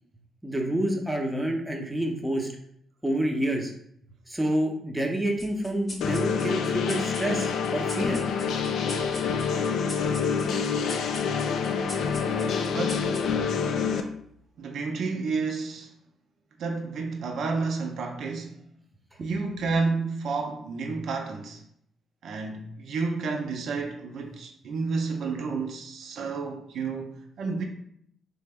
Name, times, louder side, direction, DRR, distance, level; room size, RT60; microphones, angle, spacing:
voice 1, 0.4-2.5 3.0-3.7 4.3-8.2, right 1 dB, 5° right, 0.6 m, -28 dB
sound 1, 5.4-14.3, left 1 dB, 30° left, 0.8 m, -44 dB
sound 2, 6.0-14.0, left 6 dB, 75° left, 0.3 m, -27 dB
voice 2, 12.7-13.0 14.6-15.9 16.6-18.6 19.2-21.6 22.2-27.6, right 4 dB, 70° right, 0.4 m, -30 dB
3.3 x 2.0 x 3.4 m
cardioid pair, 90°, 0 cm